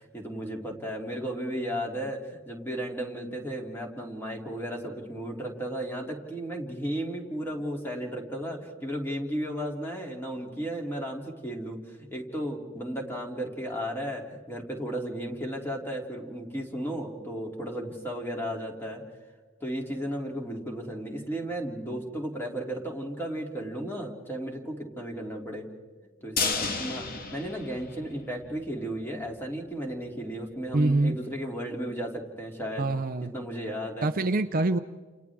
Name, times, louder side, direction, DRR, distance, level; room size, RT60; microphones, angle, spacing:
voice 1, 0.0-19.0 19.6-25.7 26.2-32.8 33.2-34.1, equal, 10° left, 0 dB, 3.0 m, -34 dB
sound 1, 26.4-28.5 28.8-28.9 29.3-29.4, left 4 dB, 50° left, 1.6 m, -32 dB
voice 2, 30.7-31.2 32.8-33.3 34.0-34.8, right 2 dB, 45° right, 9 dB, 0.7 m, -25 dB
29.5 x 29.0 x 3.6 m, 1.4 s
head